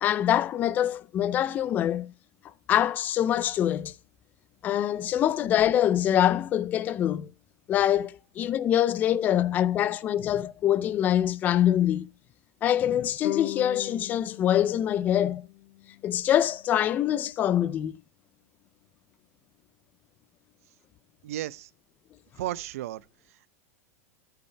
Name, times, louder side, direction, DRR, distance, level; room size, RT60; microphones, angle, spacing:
voice 1, 0.0-2.1 2.7-3.9 4.6-7.3 7.7-12.1 12.6-15.5 16.0-18.0, left 11 dB, 20° left, 0.4 m, -24 dB
sound 1, 13.2-16.5, left 18 dB, 55° left, 1.0 m, -38 dB
voice 2, 21.2-21.7 22.4-23.5, right 14 dB, 65° right, 0.7 m, -35 dB
13.0 x 5.7 x 3.3 m
supercardioid pair, 165°, 8 cm